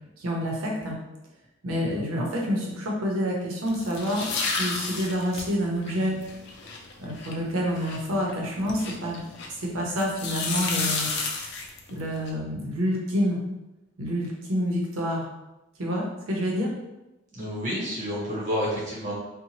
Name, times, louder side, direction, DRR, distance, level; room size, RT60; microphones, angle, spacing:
voice 1, 0.2-1.0 1.6-6.2 7.0-9.2 9.5-11.1 11.9-13.4 14.0-15.3 15.8-16.7, equal, 90° right, -2 dB, 0.7 m, -28 dB
sound 1, 3.7-9.6 10.0-12.3, left 4 dB, 55° left, 0.4 m, -32 dB
voice 2, 17.3-19.1, equal, 35° right, -7 dB, 1.0 m, -29 dB
2.8 x 2.1 x 2.9 m, 0.97 s
head